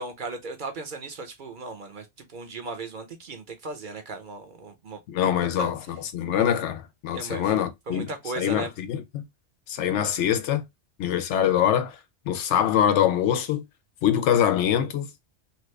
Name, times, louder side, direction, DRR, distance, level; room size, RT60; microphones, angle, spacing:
voice 1, 0.0-5.0 5.6-5.7 7.1-7.5 7.9-8.7, right 3 dB, 50° right, 0.7 m, -36 dB
voice 2, 5.1-9.2 9.7-10.6 11.0-12.0 12.3-13.6 14.0-15.1, left 10 dB, 85° left, 0.9 m, -24 dB
2.9 x 2.4 x 3.1 m
omnidirectional pair, 1.2 m